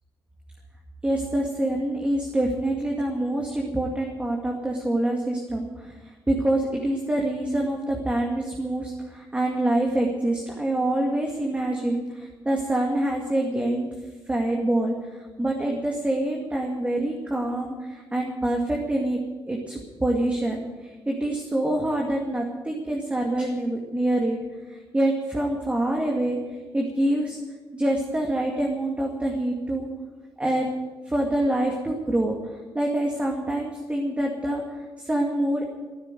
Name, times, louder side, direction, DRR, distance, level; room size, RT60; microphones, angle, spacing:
voice 1, 1.0-13.9 14.3-19.2 19.4-24.4 24.7-26.4 26.7-27.4 27.7-29.9 30.4-30.7 31.1-35.7, right 1 dB, 15° right, 0 dB, 2.2 m, -26 dB
15.0 x 9.5 x 9.3 m, 1.2 s
cardioid pair, 110°, 9 cm